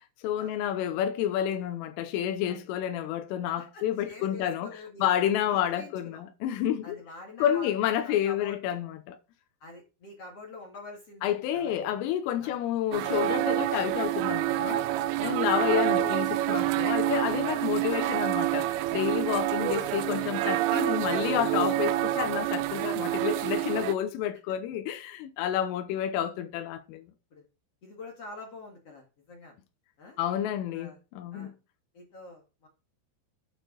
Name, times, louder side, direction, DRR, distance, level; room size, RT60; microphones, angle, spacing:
voice 1, 0.2-4.7 5.0-7.0 7.4-9.2 11.2-14.8 15.2-27.1 30.2-31.5, left 10 dB, 90° left, 3.5 m, -29 dB
voice 2, 3.2-5.1 5.5-6.2 6.8-8.6 9.6-12.0 12.4-12.6 15.2-15.4 17.6-17.7 19.3-19.7 22.9-23.1 23.8-24.0 25.5-25.7 27.3-27.5 27.8-29.6 30.0-30.2 30.7-31.0 31.3-31.5 31.9-32.7, left 2 dB, 45° left, 2.0 m, -47 dB
sound 1, 12.9-23.9, right 15 dB, 85° right, 3.3 m, -27 dB
8.8 x 6.3 x 5.2 m
omnidirectional pair, 5.7 m